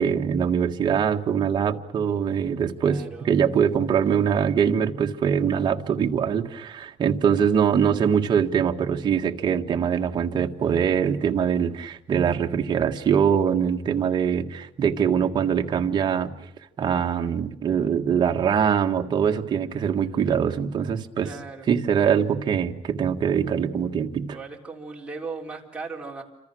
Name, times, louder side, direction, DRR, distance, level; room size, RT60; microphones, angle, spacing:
voice 1, 0.0-16.3 16.8-21.3 21.7-24.4, right 7 dB, 40° right, 3 dB, 1.6 m, -23 dB
voice 2, 2.8-3.3 21.2-21.7 22.1-22.2 24.3-26.2, right 4 dB, 10° right, -1 dB, 3.6 m, -37 dB
28.5 x 26.0 x 6.3 m, 0.82 s
cardioid pair, 160°, 12 cm